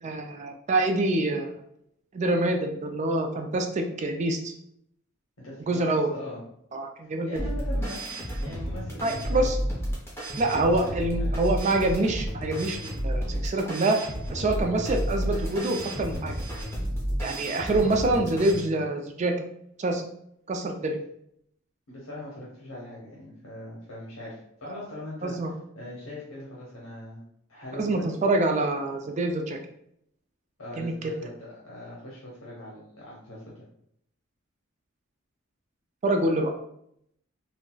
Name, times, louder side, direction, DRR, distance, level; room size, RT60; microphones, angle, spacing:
voice 1, 0.0-1.6 2.1-4.5 5.7-6.1 6.7-7.3 9.0-9.6 10.4-16.3 17.2-19.3 19.8-20.0 20.5-21.0 25.2-25.5 27.7-29.6 30.8-31.1 36.0-36.5, right 2 dB, 35° right, 4 dB, 0.3 m, -26 dB
voice 2, 5.4-5.8 6.1-6.4 7.0-9.5 10.6-11.4 21.9-25.3 25.7-27.2 27.5-28.1 30.6-33.5, left 1 dB, 85° left, -6 dB, 0.8 m, -41 dB
sound 1, 7.4-18.6, equal, 10° left, 0.7 m, -31 dB
3.8 x 2.1 x 2.2 m, 0.73 s
head